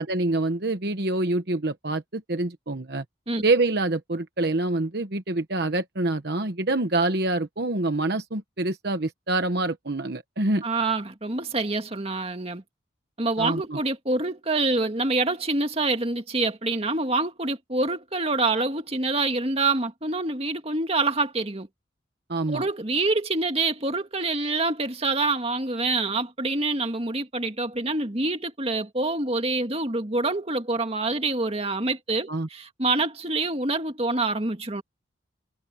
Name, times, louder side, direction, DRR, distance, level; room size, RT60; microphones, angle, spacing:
voice 1, 0.0-3.0 3.4-10.6 13.4-13.8 22.3-22.6 32.3-32.5, right 2 dB, 60° right, 1.1 m, -26 dB
voice 2, 10.6-12.6 13.2-21.7 22.5-34.8, right 3 dB, 30° right, 2.1 m, -26 dB
head